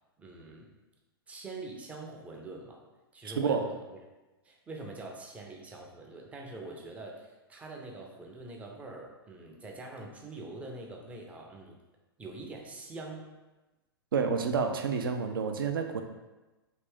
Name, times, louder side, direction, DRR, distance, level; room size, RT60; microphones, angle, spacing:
voice 1, 0.2-0.7 1.3-2.8 3.1-3.8 4.4-11.8 12.2-13.3, right 2 dB, 10° right, 0 dB, 0.5 m, -44 dB
voice 2, 3.2-3.7 14.1-16.0, right 5 dB, 60° right, 6 dB, 0.4 m, -29 dB
3.3 x 2.6 x 3.4 m, 1.1 s
figure-of-eight pair, 105°, 13 cm